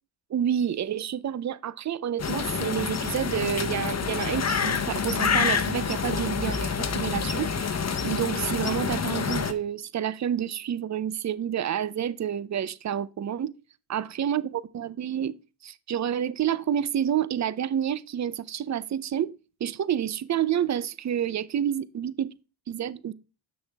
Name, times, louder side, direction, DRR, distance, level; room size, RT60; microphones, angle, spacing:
voice 1, 0.3-13.5 13.9-15.4 15.6-19.3 19.6-22.3 22.7-23.1, right 9 dB, 35° right, 0.6 m, -29 dB
sound 1, 2.2-9.5, left 6 dB, 35° left, 1.0 m, -27 dB
7.4 x 6.3 x 3.4 m
supercardioid pair, 55°, 48 cm